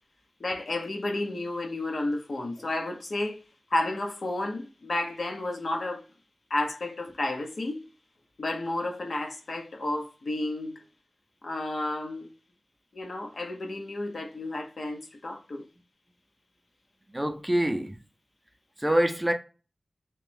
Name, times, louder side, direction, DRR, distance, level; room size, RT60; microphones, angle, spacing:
voice 1, 0.4-3.4 3.7-6.0 6.5-7.8 8.4-10.8 11.4-12.3 12.9-15.6, left 2 dB, 65° left, 0.8 m, -31 dB
voice 2, 17.1-18.0 18.8-19.3, right 1 dB, 10° right, 0.5 m, -25 dB
3.3 x 3.0 x 3.3 m
wide cardioid pair, 85°, 0 cm